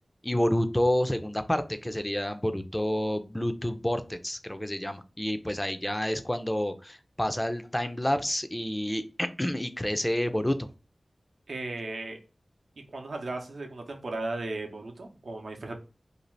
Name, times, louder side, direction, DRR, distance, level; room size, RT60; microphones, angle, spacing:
voice 1, 0.2-10.7, left 1 dB, 15° left, 9 dB, 0.4 m, -29 dB
voice 2, 11.5-12.2 12.9-15.8, right 2 dB, 85° right, 3 dB, 0.6 m, -36 dB
2.6 x 2.4 x 3.1 m, 0.32 s
wide cardioid pair, 70°, 0 cm